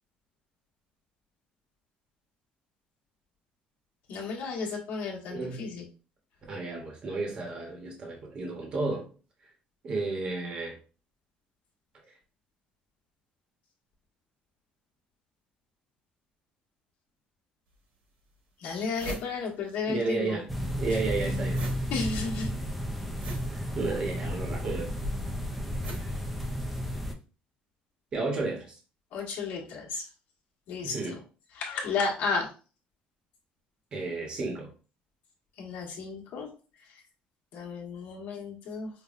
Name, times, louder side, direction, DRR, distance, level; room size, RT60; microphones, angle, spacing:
voice 1, 4.1-5.8 18.6-20.4 21.9-22.5 29.1-30.0 30.7-31.2 31.5-32.5 35.6-36.5 37.5-38.9, left 4 dB, 65° left, -2 dB, 1.2 m, -33 dB
voice 2, 5.3-5.7 6.5-9.1 9.8-10.8 19.9-20.5 20.8-21.6 23.5-24.9 26.0-26.2 28.1-28.8 30.8-31.2 33.9-34.7, right 3 dB, 30° right, 0 dB, 0.9 m, -32 dB
sound 1, 17.7-17.8 18.3-18.4 18.6-20.2 20.4-27.0, right 2 dB, 55° right, 1.1 m, -44 dB
sound 2, 20.5-27.1, equal, ahead, 0.4 m, -32 dB
5.2 x 2.1 x 2.4 m, 0.36 s
cardioid pair, 175°, 3 cm